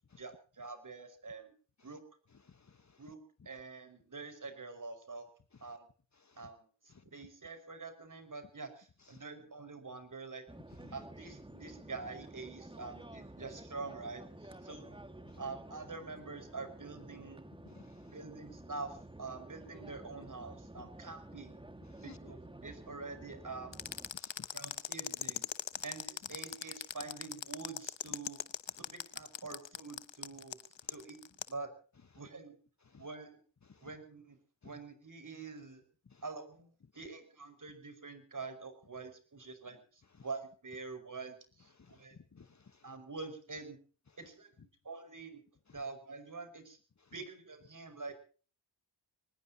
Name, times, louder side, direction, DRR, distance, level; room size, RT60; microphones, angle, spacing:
voice 1, 0.2-1.5 1.8-2.0 3.0-5.3 5.6-5.9 6.4-10.5 10.9-15.0 15.4-17.4 18.1-21.6 22.0-23.8 24.5-25.5 25.8-28.4 28.9-30.6 30.9-31.7 32.2-32.6 33.0-33.4 33.8-34.4 34.6-35.8 36.2-42.2 42.8-43.8 44.2-45.4 45.7-46.8 47.1-48.1, right 4 dB, 45° right, 9 dB, 5.4 m, -46 dB
voice 2, 2.5-3.0 6.2-6.5 10.8-10.9 15.3-15.4 17.7-18.0 20.8-20.9 22.0-22.2 24.1-24.5 32.9-33.0 33.7-33.8 36.1-36.2 41.8-42.0 42.3-42.8, left 5 dB, 40° left, 11 dB, 1.2 m, -57 dB
sound 1, 10.5-24.1, right 1 dB, 10° right, 1.8 m, -51 dB
sound 2, 23.7-31.5, left 9 dB, 75° left, 1.0 m, -39 dB
24.0 x 19.5 x 2.8 m, 0.40 s
wide cardioid pair, 105°, 45 cm